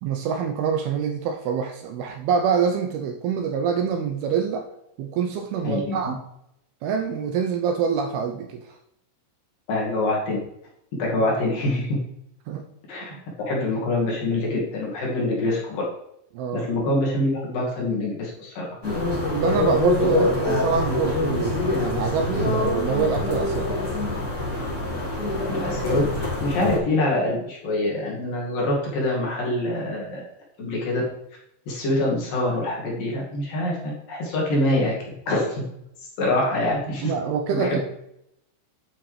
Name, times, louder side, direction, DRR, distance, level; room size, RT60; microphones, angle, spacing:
voice 1, 0.0-4.7 5.0-6.2 6.8-8.6 12.5-12.7 13.1-13.2 16.3-16.7 19.3-23.7 30.6-30.8 37.0-37.8, right 6 dB, 75° right, 4 dB, 2.5 m, -25 dB
voice 2, 5.6-6.1 9.7-10.4 11.0-12.0 12.9-15.8 16.5-18.7 25.5-26.0 26.4-30.2 30.6-31.0 31.7-35.0 35.3-35.6 36.2-37.0 37.5-37.8, left 1 dB, 55° left, -3 dB, 3.7 m, -25 dB
sound 1, 18.8-26.8, left 2 dB, 20° left, 2.7 m, -25 dB
9.8 x 8.8 x 3.4 m, 0.79 s
omnidirectional pair, 5.0 m